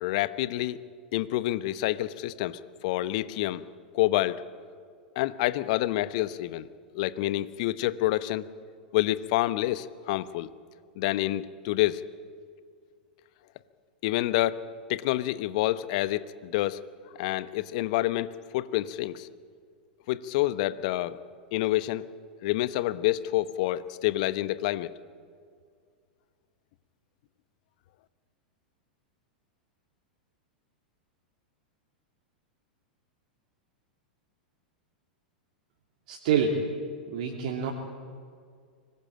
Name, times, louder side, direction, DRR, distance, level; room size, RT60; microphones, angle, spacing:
voice 1, 0.0-0.8 1.1-3.6 3.9-4.4 5.1-6.7 6.9-8.5 8.9-10.5 11.0-12.0 14.0-14.6 14.9-16.8 17.2-19.3 20.1-21.2 21.5-22.0 22.4-24.9, left 16 dB, 50° left, 16 dB, 1.0 m, -28 dB
voice 2, 36.1-36.7 37.1-37.7, right 6 dB, 55° right, -1 dB, 2.9 m, -27 dB
24.5 x 20.5 x 8.8 m, 2.1 s
figure-of-eight pair, 95°, 5 cm